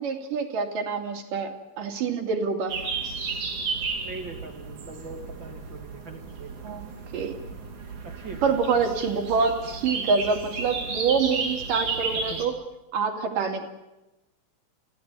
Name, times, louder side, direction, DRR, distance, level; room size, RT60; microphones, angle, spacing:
voice 1, 0.0-2.8 6.6-6.8 7.1-7.4 8.4-12.5 12.9-13.7, right 5 dB, 85° right, 4 dB, 4.1 m, -26 dB
sound 1, 2.7-12.5, right 4 dB, 65° right, 4.8 m, -33 dB
voice 2, 4.0-6.5 8.0-8.6 12.3-12.5, right 3 dB, 40° right, 4 dB, 2.8 m, -41 dB
29.5 x 16.0 x 9.2 m, 1.0 s
omnidirectional pair, 3.7 m